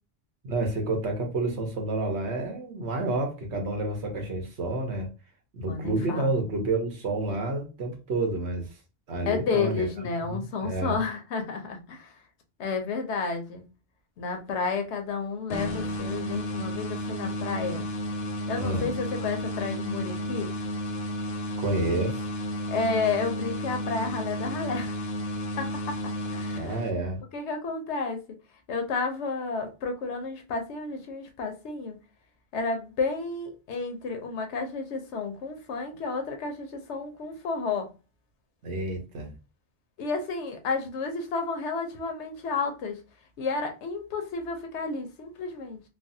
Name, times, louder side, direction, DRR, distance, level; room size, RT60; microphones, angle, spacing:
voice 1, 0.4-5.1 5.5-8.6 9.1-9.9 10.3-11.0 18.6-18.9 21.6-22.2 26.5-27.2 38.6-39.3, right 2 dB, 90° right, 1.2 m, -29 dB
voice 2, 5.6-6.4 9.3-12.2 12.6-13.6 14.2-17.9 18.5-20.5 22.7-25.0 25.6-25.9 26.3-26.8 27.3-28.4 28.7-32.0 32.5-37.9 40.0-43.0 43.4-45.8, left 4 dB, 90° left, 1.0 m, -31 dB
sound 1, 15.5-27.2, equal, 65° left, 0.7 m, -32 dB
3.2 x 2.0 x 2.6 m
omnidirectional pair, 1.1 m